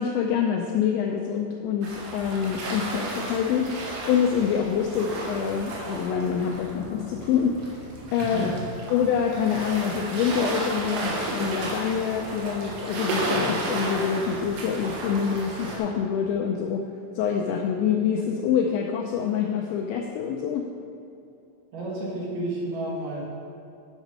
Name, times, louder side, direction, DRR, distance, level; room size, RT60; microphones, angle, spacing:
voice 1, 0.0-3.8 4.1-8.5 8.9-16.9 17.2-20.7, left 7 dB, 85° left, 2 dB, 2.6 m, -26 dB
sound 1, 1.8-15.8, right 2 dB, 90° right, 4.2 m, -33 dB
voice 2, 8.2-8.6 21.7-23.2, right 1 dB, 70° right, -5 dB, 1.6 m, -31 dB
9.7 x 6.1 x 5.4 m, 2.7 s
omnidirectional pair, 5.6 m